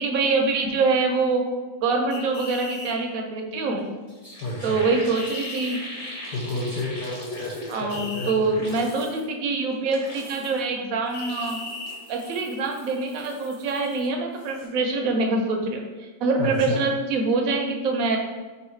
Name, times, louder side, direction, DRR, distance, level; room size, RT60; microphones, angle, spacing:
voice 1, 0.0-1.4 1.8-3.9 4.6-5.8 7.7-11.6 12.1-18.2, right 3 dB, 70° right, 3 dB, 0.9 m, -25 dB
sound 1, 2.1-3.0 5.2-5.8 7.9-8.3 11.1-12.0, left 3 dB, 55° left, 0.8 m, -36 dB
sound 2, 3.8-3.9 4.1-8.1 8.4-9.2 9.7-10.7 11.1-14.1 14.3-14.7, equal, 25° left, 1.0 m, -41 dB
voice 2, 4.4-4.8 6.3-8.3 8.6-8.9 16.4-16.8, left 2 dB, 85° left, -6 dB, 1.4 m, -31 dB
3.9 x 2.5 x 4.3 m, 1.3 s
omnidirectional pair, 1.7 m